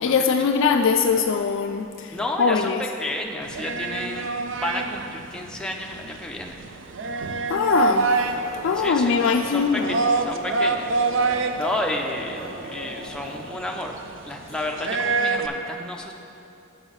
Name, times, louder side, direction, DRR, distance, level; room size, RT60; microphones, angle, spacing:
voice 1, 0.0-2.8 7.5-8.1 8.6-10.0, left 5 dB, 65° left, 5 dB, 0.4 m, -22 dB
voice 2, 2.1-6.6 8.7-10.9 11.2-13.9 14.2-16.1, left 1 dB, 5° left, 0 dB, 0.6 m, -31 dB
sound 1, 3.4-15.5, right 3 dB, 65° right, 0.5 m, -27 dB
sound 2, 7.6-13.5, right 1 dB, 85° right, 1.1 m, -39 dB
7.1 x 7.1 x 5.6 m, 2.8 s
head